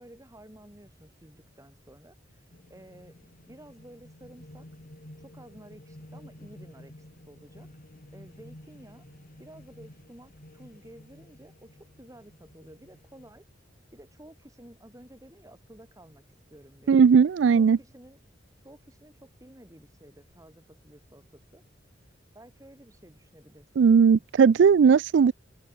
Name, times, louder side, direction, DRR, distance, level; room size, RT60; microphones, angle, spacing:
voice 1, 0.0-2.4 2.7-4.7 5.2-6.9 7.3-7.7 8.1-9.1 9.4-13.4 13.9-16.2 16.5-17.0 17.5-18.2 18.6-21.6 22.3-23.9, right 1 dB, 15° right, 5.5 m, -52 dB
sound 1, 2.5-13.3, left 1 dB, 50° left, 3.1 m, -51 dB
voice 2, 16.9-17.8 23.8-25.3, right 6 dB, 65° right, 0.3 m, -18 dB
open air
head